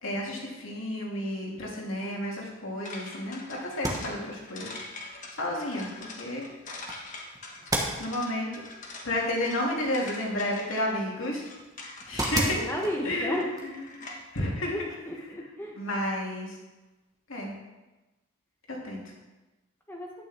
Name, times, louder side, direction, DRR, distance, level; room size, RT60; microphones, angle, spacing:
voice 1, 0.0-4.8 5.3-6.5 8.0-8.5 9.0-11.4 12.1-12.6 13.0-13.4 13.9-14.9 15.8-16.6 17.3-17.5 18.7-19.0, left 1 dB, 70° left, -2 dB, 2.7 m, -31 dB
sound 1, 2.8-14.4, left 2 dB, 40° left, 1.5 m, -44 dB
sound 2, 3.7-15.3, right 1 dB, 20° right, 1.4 m, -38 dB
voice 2, 12.6-13.4 14.7-15.8 19.9-20.1, equal, 10° left, -1 dB, 1.2 m, -33 dB
11.5 x 9.6 x 3.6 m, 1.1 s
head